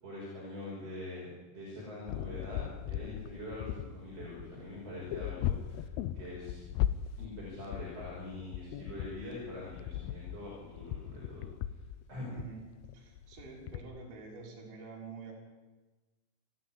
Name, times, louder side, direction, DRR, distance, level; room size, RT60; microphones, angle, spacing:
voice 1, 0.0-5.9 6.1-6.6 7.2-11.5 12.1-12.3, left 1 dB, 30° right, -6 dB, 6.4 m, -44 dB
sound 1, 2.1-13.8, left 12 dB, 85° left, 2.2 m, -38 dB
voice 2, 12.3-12.6 12.9-15.3, right 4 dB, 55° right, -3 dB, 5.7 m, -47 dB
28.5 x 10.0 x 10.0 m, 1.2 s
omnidirectional pair, 5.6 m